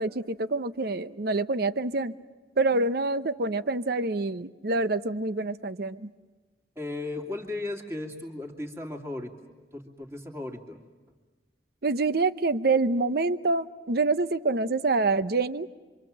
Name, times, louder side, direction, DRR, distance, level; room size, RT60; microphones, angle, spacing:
voice 1, 0.0-2.1 2.6-6.1 11.8-15.7, right 3 dB, 55° right, 14 dB, 0.8 m, -26 dB
voice 2, 6.8-9.3 9.6-10.8, left 2 dB, 15° right, 0 dB, 2.6 m, -36 dB
26.5 x 25.5 x 7.5 m, 1.4 s
head